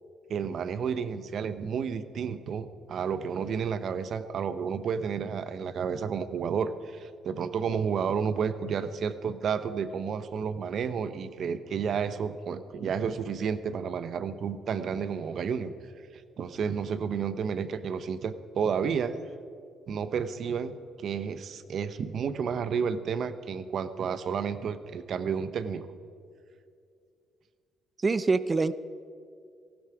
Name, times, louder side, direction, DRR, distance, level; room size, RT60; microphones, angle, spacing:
voice 1, 0.3-15.7 16.4-19.2 19.9-25.9, right 6 dB, 60° right, 12 dB, 1.0 m, -31 dB
voice 2, 28.0-28.7, right 3 dB, 30° right, 15 dB, 0.6 m, -25 dB
18.0 x 15.5 x 4.9 m, 2.3 s
cardioid pair, 90°, 0 cm